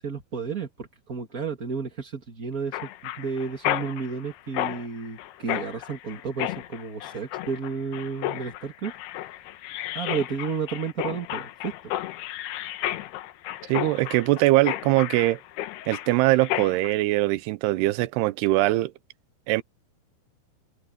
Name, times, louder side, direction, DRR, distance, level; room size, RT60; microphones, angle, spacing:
voice 1, 0.0-8.9 9.9-11.7, right 5 dB, 30° right, 1.6 m, -32 dB
Mechanisms, 2.7-16.9, left 15 dB, 80° left, 3.0 m, -33 dB
voice 2, 13.7-15.4 15.9-18.9 19.5-19.6, right 18 dB, 85° right, 2.8 m, -22 dB
omnidirectional pair, 4.7 m